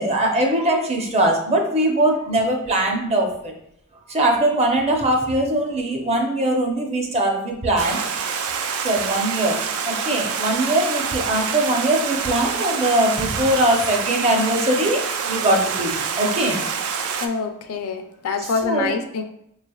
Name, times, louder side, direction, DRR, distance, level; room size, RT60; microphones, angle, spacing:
voice 1, 0.0-3.3 4.1-8.0 8.8-9.5 9.9-15.0 15.3-15.9 16.2-16.6 18.6-18.9, right 1 dB, 30° right, 1 dB, 0.6 m, -21 dB
Stream, 7.8-17.3, right 6 dB, 70° right, 0.4 m, -26 dB
voice 2, 17.2-19.2, left 5 dB, 70° left, 6 dB, 0.4 m, -26 dB
4.5 x 3.2 x 2.3 m, 0.74 s
head